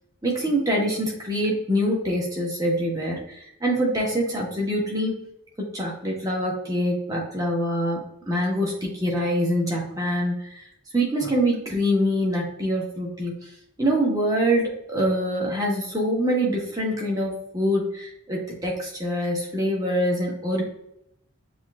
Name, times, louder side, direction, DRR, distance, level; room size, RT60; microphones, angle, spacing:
voice 1, 0.2-5.1 5.7-10.6 10.9-13.5 13.8-20.6, equal, 20° right, -3 dB, 1.2 m, -25 dB
7.2 x 3.0 x 2.4 m, 0.77 s
head